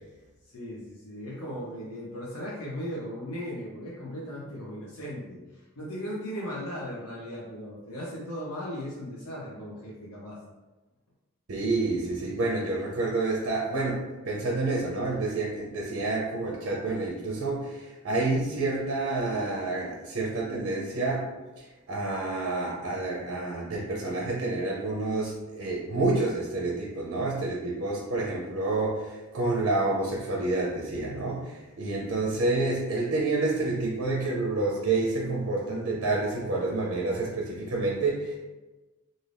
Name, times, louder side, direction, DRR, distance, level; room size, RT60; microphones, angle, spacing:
voice 1, 0.4-10.4, equal, 85° left, -5 dB, 0.7 m, -37 dB
voice 2, 11.5-14.0 14.2-21.2 21.6-38.4, right 2 dB, 55° right, -2 dB, 0.5 m, -28 dB
2.6 x 2.5 x 3.3 m, 1.1 s
head